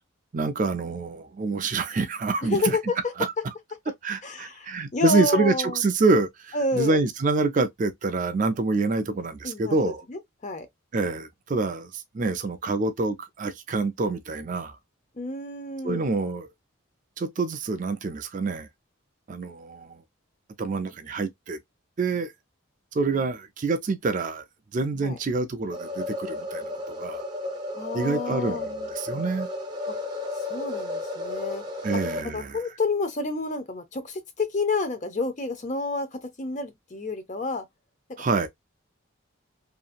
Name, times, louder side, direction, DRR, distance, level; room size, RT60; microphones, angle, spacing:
voice 1, 0.3-2.8 3.2-3.3 4.0-10.0 10.9-14.8 15.8-16.5 17.2-18.7 19.3-20.0 20.6-21.6 22.0-22.3 22.9-24.4 24.7-27.2 27.9-29.5 31.8-32.6 38.2-38.5, right 3 dB, 35° right, 0.3 m, -26 dB
voice 2, 2.4-3.0 4.2-5.8 6.5-7.0 9.4-10.7 15.2-16.0 25.0-25.2 27.7-28.7 29.9-30.0 30.3-31.6 31.9-32.0 32.3-36.1 36.4-37.7, left 3 dB, 35° left, 0.6 m, -29 dB
sound 1, 25.7-32.2, left 2 dB, 20° right, 0.8 m, -33 dB
2.8 x 2.6 x 2.4 m
head